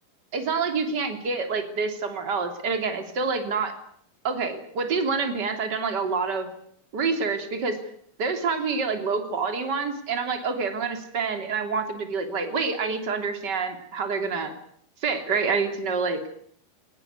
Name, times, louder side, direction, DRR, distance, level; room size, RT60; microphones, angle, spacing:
voice 1, 0.3-3.7 4.2-6.5 6.9-7.8 8.2-14.5 15.0-16.2, right 4 dB, 30° right, 6 dB, 3.4 m, -27 dB
22.5 x 20.0 x 9.6 m, 0.64 s
omnidirectional pair, 4.4 m